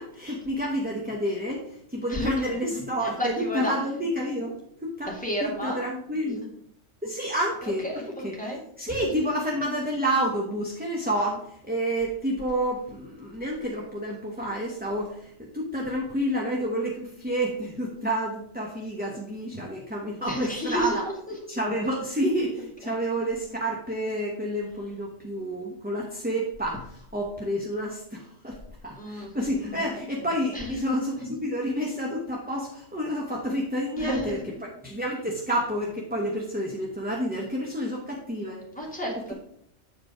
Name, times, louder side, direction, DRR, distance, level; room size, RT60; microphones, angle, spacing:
voice 1, 0.0-5.1 5.4-6.4 7.0-7.9 8.2-8.3 8.8-21.1 21.5-38.6, equal, 10° right, -2 dB, 0.9 m, -29 dB
voice 2, 2.1-2.5 3.0-3.7 5.1-5.8 7.6-9.0 20.2-21.1 22.8-22.9 28.9-29.8 30.5-30.8 33.9-34.4 38.7-39.3, equal, 5° left, -3 dB, 2.1 m, -32 dB
7.9 x 4.8 x 5.0 m, 0.70 s
omnidirectional pair, 1.2 m